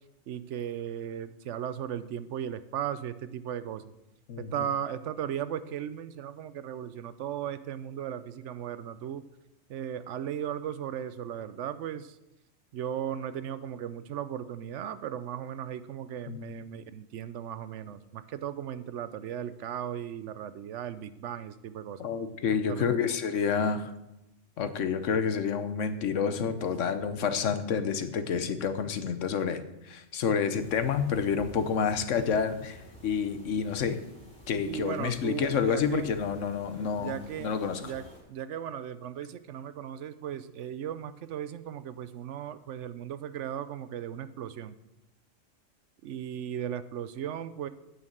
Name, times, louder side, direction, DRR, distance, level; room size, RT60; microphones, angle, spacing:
voice 1, 0.3-3.9 4.4-9.2 9.7-12.2 12.7-22.1 22.7-23.2 34.6-36.1 37.0-44.8 46.0-47.7, right 9 dB, 75° right, 13 dB, 0.9 m, -36 dB
voice 2, 22.0-23.9 24.6-32.8 33.0-34.0 34.5-37.2 37.4-37.8, left 6 dB, 85° left, 10 dB, 1.2 m, -29 dB
sound 1, 30.6-38.2, left 1 dB, 50° left, 3.9 m, -51 dB
9.2 x 6.4 x 7.8 m, 0.92 s
omnidirectional pair, 1.2 m